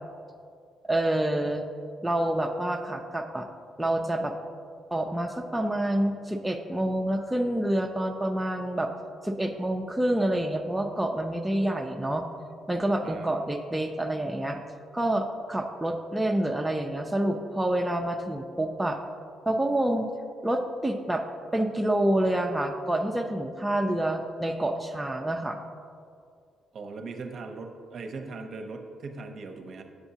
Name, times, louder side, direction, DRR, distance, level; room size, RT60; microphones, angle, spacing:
voice 1, 0.8-1.6 2.0-3.5 3.8-4.3 4.9-8.9 9.2-12.2 12.7-14.6 14.9-19.0 19.5-20.1 20.4-21.2 21.5-25.6, right 1 dB, 10° right, 3 dB, 0.4 m, -27 dB
voice 2, 13.0-13.4 26.7-29.8, right 3 dB, 55° right, 5 dB, 0.6 m, -39 dB
7.9 x 6.8 x 2.8 m, 2.3 s
cardioid pair, 90°, 0 cm